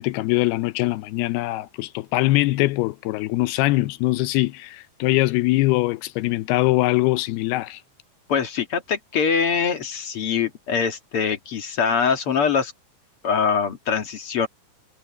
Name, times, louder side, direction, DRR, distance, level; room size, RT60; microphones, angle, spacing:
voice 1, 0.0-7.8, left 19 dB, 80° left, 2.5 m, -22 dB
voice 2, 8.3-12.7 13.2-14.5, left 6 dB, 50° left, 1.7 m, -23 dB
omnidirectional pair, 4.9 m